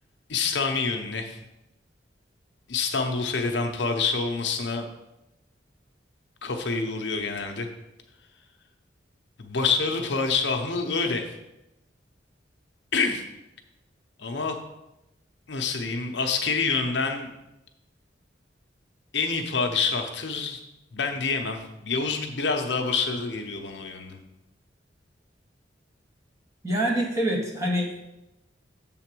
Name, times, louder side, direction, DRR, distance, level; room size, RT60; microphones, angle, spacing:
voice 1, 0.3-1.4 2.7-4.9 6.4-7.7 9.4-11.3 12.9-13.2 14.2-14.6 15.5-17.3 19.1-20.6 20.9-24.2, left 4 dB, 65° left, 4 dB, 0.8 m, -27 dB
voice 2, 26.6-28.0, right 1 dB, 15° right, -2 dB, 1.4 m, -25 dB
7.4 x 3.9 x 6.1 m, 0.93 s
head